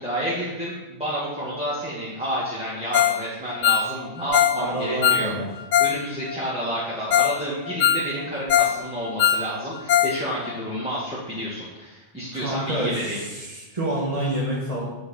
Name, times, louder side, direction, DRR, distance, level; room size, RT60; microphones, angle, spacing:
voice 1, 0.0-5.3 5.8-13.2, equal, 5° right, -8 dB, 1.9 m, -30 dB
Ringtone, 2.9-3.2 3.5-6.0 6.3-6.4 6.8-6.9 7.1-7.4 7.7-8.8 9.0-10.2 10.4-10.5 11.0-11.1, left 9 dB, 85° left, 0.9 m, -21 dB
voice 2, 4.6-5.4 12.3-14.9, right 1 dB, 30° right, -5 dB, 1.5 m, -28 dB
9.5 x 4.6 x 5.6 m, 1.1 s
omnidirectional pair, 1.2 m